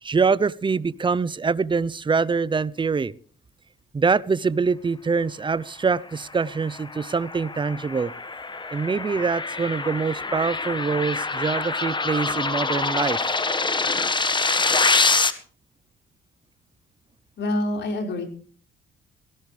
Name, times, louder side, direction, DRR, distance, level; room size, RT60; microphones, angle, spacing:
voice 1, 0.0-3.1 3.9-8.1 8.7-13.2, right 5 dB, 25° right, 20 dB, 0.7 m, -24 dB
sound 1, 6.4-15.3, left 3 dB, 25° left, 1.6 m, -25 dB
voice 2, 17.4-18.3, left 1 dB, 60° left, 4 dB, 5.2 m, -26 dB
17.5 x 17.5 x 3.3 m, 0.43 s
cardioid pair, 90°, 20 cm